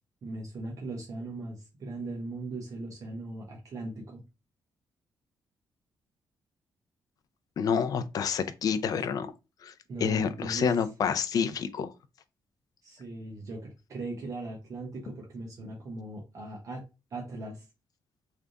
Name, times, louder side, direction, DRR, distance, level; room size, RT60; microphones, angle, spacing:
voice 1, 0.2-4.2 9.9-10.7 12.8-16.8 17.1-17.7, right 2 dB, 45° right, 0.8 m, -39 dB
voice 2, 7.6-9.3 9.6-9.7 10.0-11.9, left 7 dB, 50° left, 0.4 m, -28 dB
3.4 x 2.4 x 3.8 m
wide cardioid pair, 155°, 8 cm